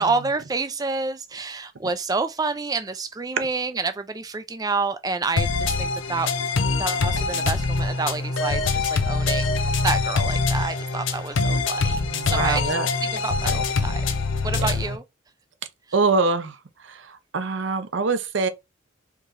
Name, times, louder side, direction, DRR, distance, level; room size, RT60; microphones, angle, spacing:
voice 1, 0.0-6.3 6.8-9.6 9.8-12.7 13.0-14.0 14.4-15.0, right 4 dB, 20° right, 0.4 m, -28 dB
sound 1, 5.4-15.0, left 4 dB, 80° left, 0.6 m, -24 dB
voice 2, 11.8-12.9 13.4-13.6 14.6-14.7 15.9-16.6 16.8-18.5, right 4 dB, 70° right, 0.6 m, -24 dB
4.6 x 3.0 x 2.5 m
head